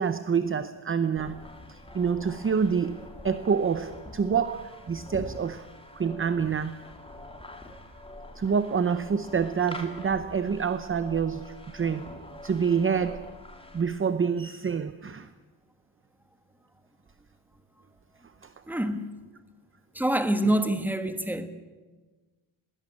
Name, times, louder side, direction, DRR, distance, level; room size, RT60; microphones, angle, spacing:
voice 1, 0.0-1.4 1.7-5.7 6.0-6.8 8.4-12.1 12.4-13.3 13.7-15.3 18.4-18.8 20.4-20.5, right 6 dB, 30° right, 0.6 m, -27 dB
sound 1, 1.2-13.8, left 1 dB, 10° left, 2.7 m, -45 dB
voice 2, 18.7-19.1 19.9-21.5, right 1 dB, 5° right, 1.4 m, -26 dB
20.5 x 17.5 x 9.9 m
wide cardioid pair, 155°, 46 cm